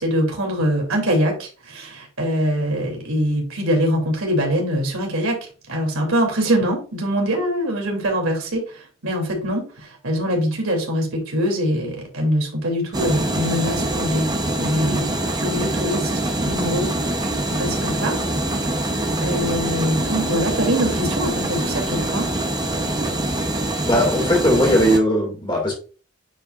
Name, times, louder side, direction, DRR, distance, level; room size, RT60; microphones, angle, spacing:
voice 1, 0.0-5.4 5.7-15.1 15.3-16.1 16.5-18.2 19.2-22.3, equal, 75° right, 1 dB, 2.9 m, -23 dB
sound 1, 12.9-25.0, right 1 dB, 20° right, 0.8 m, -24 dB
voice 2, 23.8-25.7, equal, 20° left, 0 dB, 2.2 m, -18 dB
9.2 x 5.3 x 2.5 m, 0.37 s
head